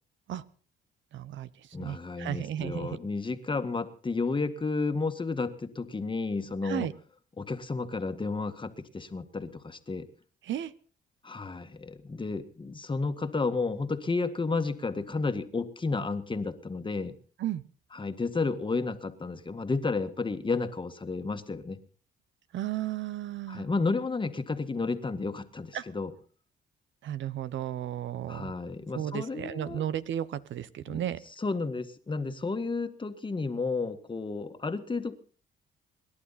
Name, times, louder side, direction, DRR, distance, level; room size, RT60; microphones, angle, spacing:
voice 1, 1.1-3.0 6.6-6.9 10.4-10.7 17.4-17.6 22.5-23.6 25.7-25.8 27.0-28.5 28.9-31.2, right 11 dB, 70° right, 15 dB, 0.9 m, -34 dB
voice 2, 1.7-6.9 7.4-10.1 11.2-17.2 17.9-21.8 23.5-26.1 28.3-29.9 30.9-31.0 31.4-35.2, left 3 dB, 25° left, 8 dB, 1.7 m, -32 dB
28.0 x 11.5 x 4.2 m, 0.42 s
cardioid pair, 90°, 20 cm